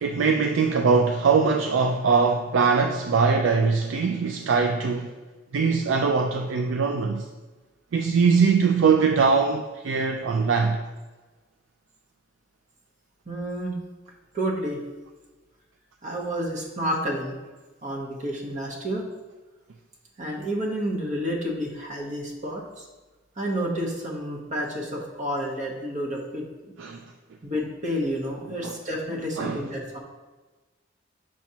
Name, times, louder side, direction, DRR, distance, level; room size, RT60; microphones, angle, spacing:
voice 1, 0.0-5.1 5.5-7.3 7.9-10.8 26.8-27.0 28.6-28.7 29.4-29.6, right 5 dB, 80° right, 0.4 m, -22 dB
voice 2, 13.3-13.7 14.3-14.8 16.0-17.4 17.8-19.1 20.2-22.8 23.4-26.7 27.4-30.0, equal, 40° right, 1.1 m, -30 dB
6.2 x 5.9 x 2.8 m
head